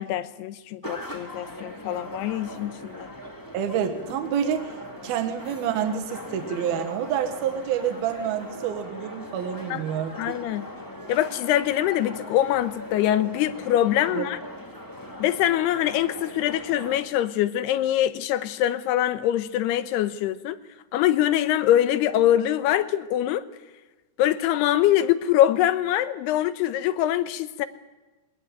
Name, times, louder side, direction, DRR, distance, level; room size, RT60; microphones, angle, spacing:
voice 1, 0.0-3.1 9.7-9.8 10.2-10.7 11.1-14.4 15.2-20.6 20.9-23.5 24.2-27.7, left 12 dB, 80° left, 12 dB, 3.0 m, -23 dB
sound 1, 0.8-17.0, left 1 dB, 10° left, 0.9 m, -40 dB
voice 2, 3.5-4.8 5.0-10.4 14.1-14.3, right 9 dB, 70° right, 5 dB, 3.3 m, -28 dB
22.0 x 18.5 x 9.1 m, 1.2 s
omnidirectional pair, 4.6 m